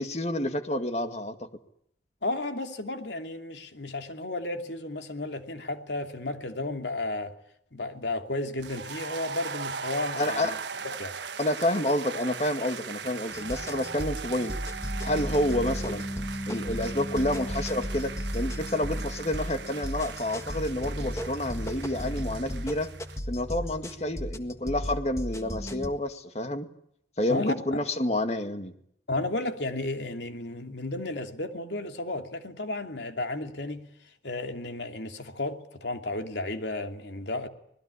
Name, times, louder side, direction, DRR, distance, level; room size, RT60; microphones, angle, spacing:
voice 1, 0.0-1.4 10.2-10.6 11.4-14.6 15.0-16.0 16.5-22.9 23.3-26.7 27.2-28.7, left 1 dB, 35° left, 7 dB, 2.2 m, -29 dB
voice 2, 2.2-7.3 7.7-10.6 10.8-11.1 27.3-27.8 29.1-33.8 34.2-37.5, left 2 dB, 85° left, 6 dB, 2.9 m, -33 dB
sound 1, 8.6-23.2, right 6 dB, 90° right, 1.4 m, -39 dB
sound 2, 13.3-25.9, equal, 15° left, 1.6 m, -35 dB
26.0 x 20.0 x 9.9 m, 0.73 s
head